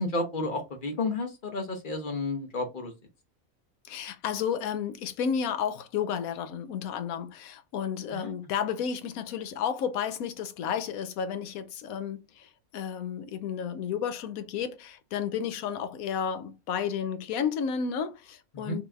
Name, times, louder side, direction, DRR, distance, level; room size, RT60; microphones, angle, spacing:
voice 1, 0.0-2.9 8.1-8.3 18.5-18.8, left 2 dB, 40° left, 1.0 m, -31 dB
voice 2, 3.9-18.8, left 7 dB, 90° left, 1.1 m, -32 dB
5.2 x 2.9 x 2.3 m
omnidirectional pair, 1.5 m